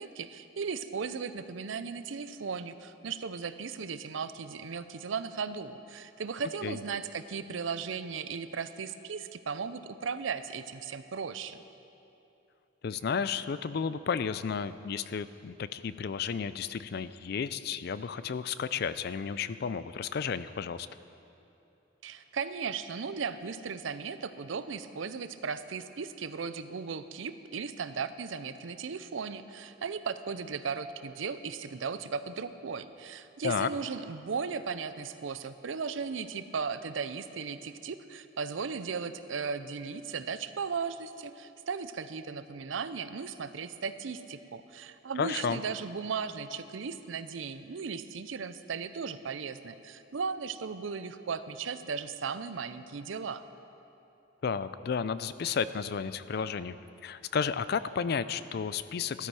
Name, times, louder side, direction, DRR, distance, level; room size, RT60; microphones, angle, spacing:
voice 1, 0.0-11.6 22.0-53.4, right 5 dB, 80° right, 12 dB, 0.5 m, -36 dB
voice 2, 12.8-20.9 33.4-33.7 45.2-45.6 54.4-56.8 57.0-59.3, left 6 dB, 55° left, 14 dB, 0.4 m, -32 dB
13.0 x 13.0 x 4.8 m, 2.9 s
head